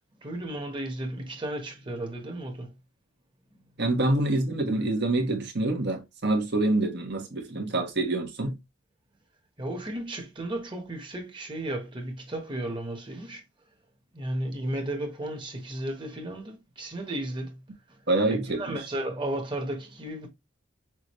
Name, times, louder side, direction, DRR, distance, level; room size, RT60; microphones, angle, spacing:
voice 1, 0.2-2.7 3.5-3.6 9.6-13.4 14.1-17.6 17.9-18.0 18.3-20.3, right 1 dB, 25° right, 1.3 m, -34 dB
voice 2, 3.8-8.6 18.1-18.8, right 2 dB, 55° right, 1.4 m, -26 dB
6.2 x 2.6 x 3.1 m
head